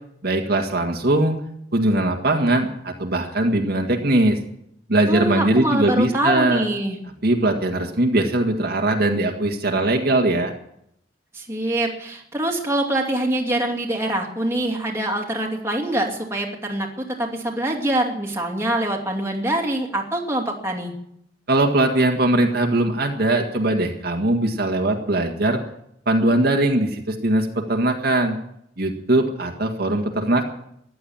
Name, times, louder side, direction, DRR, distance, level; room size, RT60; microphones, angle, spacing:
voice 1, 0.2-1.4 1.7-4.4 4.9-6.6 7.2-10.5 21.5-25.6 26.1-28.4 28.8-30.4, right 1 dB, 55° right, 3 dB, 1.9 m, -20 dB
voice 2, 5.1-7.0 11.3-16.9 17.2-20.9, right 1 dB, 15° right, 0 dB, 2.6 m, -24 dB
15.0 x 11.0 x 8.8 m, 0.74 s
head